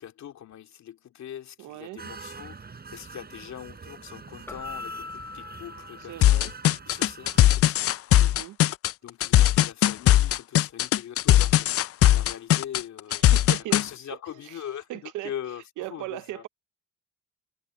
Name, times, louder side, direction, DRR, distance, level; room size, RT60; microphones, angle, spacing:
voice 1, 0.0-6.5 6.9-7.9 9.0-13.2 13.5-16.5, left 10 dB, 65° left, 2.4 m, -41 dB
voice 2, 1.6-2.0 6.1-6.5 8.2-8.6 13.1-13.8 14.5-14.6 14.9-15.3 15.8-16.5, right 16 dB, 90° right, 0.9 m, -37 dB
sound 1, 2.0-7.6, right 4 dB, 30° right, 6.0 m, -45 dB
Keyboard (musical), 4.5-6.9, left 4 dB, 10° left, 1.6 m, -41 dB
sound 2, 6.2-13.8, left 13 dB, 50° left, 0.4 m, -19 dB
cardioid pair, 90°, 30 cm